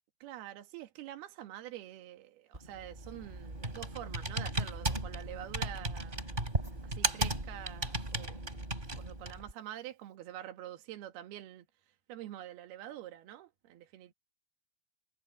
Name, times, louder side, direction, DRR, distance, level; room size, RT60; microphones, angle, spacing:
voice 1, 0.2-6.2 6.8-8.7 8.9-11.7 12.1-14.1, right 12 dB, 70° right, 3.6 m, -46 dB
Computer keyboard, 2.5-9.5, right 2 dB, 15° right, 3.4 m, -36 dB
omnidirectional pair, 4.7 m